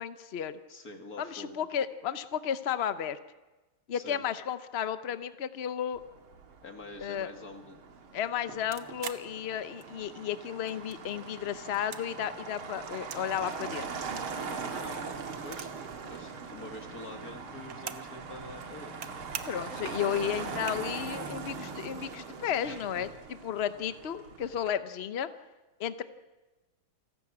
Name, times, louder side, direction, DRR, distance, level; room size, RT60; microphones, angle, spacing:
voice 1, 0.0-0.6 1.2-3.2 3.9-6.0 7.0-7.3 8.1-13.9 19.5-23.1 23.4-25.3 25.8-26.0, left 9 dB, 75° left, 11 dB, 0.5 m, -33 dB
voice 2, 0.7-1.7 3.9-4.2 6.6-7.8 14.3-15.0 15.4-15.7 16.0-19.3 22.6-23.0, left 2 dB, 45° left, 4 dB, 2.7 m, -46 dB
Motor vehicle (road), 5.9-24.7, right 5 dB, 80° right, 2.6 m, -41 dB
sound 1, 8.7-10.2 10.5-11.3 11.6-13.3 13.5-15.9 16.2-16.3 16.5-18.2 18.5-19.1 19.3-19.7 20.2-20.3 20.5-21.2, right 8 dB, 60° right, 1.7 m, -43 dB
28.0 x 13.0 x 8.6 m, 1.2 s
omnidirectional pair, 2.3 m